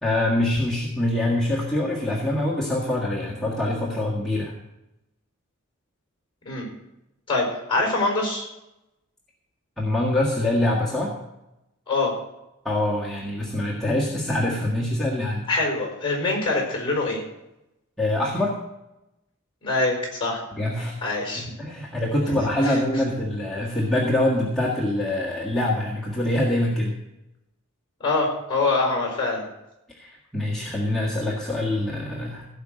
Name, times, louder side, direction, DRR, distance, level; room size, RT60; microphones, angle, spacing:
voice 1, 0.0-4.5 9.8-11.1 12.6-15.5 18.0-18.5 20.5-21.0 21.3-26.9 30.0-32.5, left 1 dB, ahead, -6 dB, 1.7 m, -24 dB
voice 2, 7.3-8.5 11.9-12.2 15.5-17.2 19.6-20.4 21.0-21.5 22.6-22.8 28.0-29.5, left 3 dB, 25° left, 1 dB, 4.6 m, -24 dB
16.5 x 5.8 x 7.6 m, 0.92 s
head